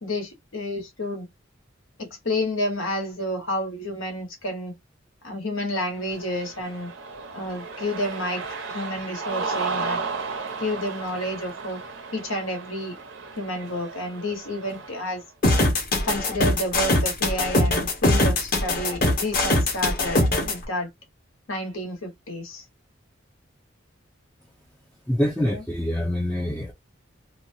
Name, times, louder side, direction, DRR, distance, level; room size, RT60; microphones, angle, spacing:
voice 1, 0.0-1.3 2.0-4.7 5.2-6.9 7.3-8.4 8.7-10.0 10.6-11.8 12.1-13.0 13.4-15.2 16.0-20.9 21.5-22.6 25.4-25.6, left 1 dB, 85° left, 1.3 m, -30 dB
Cheering, 6.0-15.2, right 4 dB, 70° right, 0.8 m, -34 dB
sound 1, 15.4-20.5, left 1 dB, 45° left, 1.2 m, -21 dB
voice 2, 25.1-26.7, left 1 dB, 5° left, 0.4 m, -25 dB
2.9 x 2.3 x 2.7 m
head